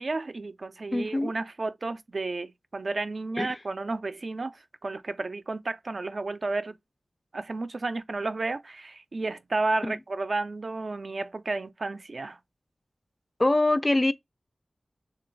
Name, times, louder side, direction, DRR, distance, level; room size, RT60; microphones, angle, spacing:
voice 1, 0.0-6.8 7.3-12.4, right 3 dB, 70° right, 0.3 m, -32 dB
voice 2, 0.9-1.3 3.4-3.5 9.8-10.0 13.4-14.1, left 2 dB, 35° left, 0.3 m, -24 dB
3.0 x 2.3 x 3.1 m
cardioid pair, 40°, 0 cm